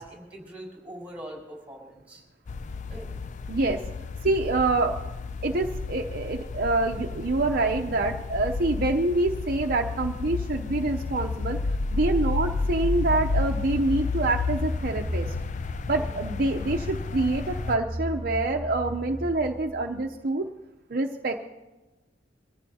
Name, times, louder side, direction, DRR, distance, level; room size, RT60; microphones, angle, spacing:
voice 1, 0.0-2.2 2.9-3.1 15.9-16.0, right 1 dB, 10° right, -2 dB, 4.9 m, -42 dB
sound 1, 2.5-17.8, left 3 dB, 40° left, 0.4 m, -31 dB
voice 2, 3.5-3.8 4.2-5.0 5.4-15.3 15.9-20.5 20.9-21.5, right 2 dB, 50° right, 3 dB, 0.7 m, -26 dB
sound 2, 13.6-20.2, equal, 35° right, 1.5 m, -37 dB
23.5 x 15.0 x 2.8 m, 1.1 s
head